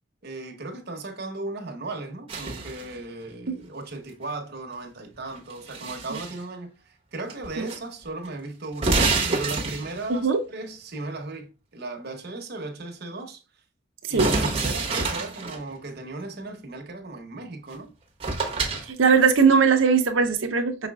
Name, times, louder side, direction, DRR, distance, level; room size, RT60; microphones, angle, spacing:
voice 1, 0.2-9.0 9.3-13.4 14.1-17.9, right 2 dB, 55° right, 1.0 m, -36 dB
sound 1, 2.3-2.9 5.3-6.4 7.3-7.8 8.0-8.1 8.7-10.1 14.2-15.6 17.7-17.8 18.2-18.9, right 3 dB, 30° right, 1.0 m, -27 dB
voice 2, 18.9-20.9, right 5 dB, 80° right, 0.7 m, -20 dB
5.6 x 4.1 x 2.3 m
head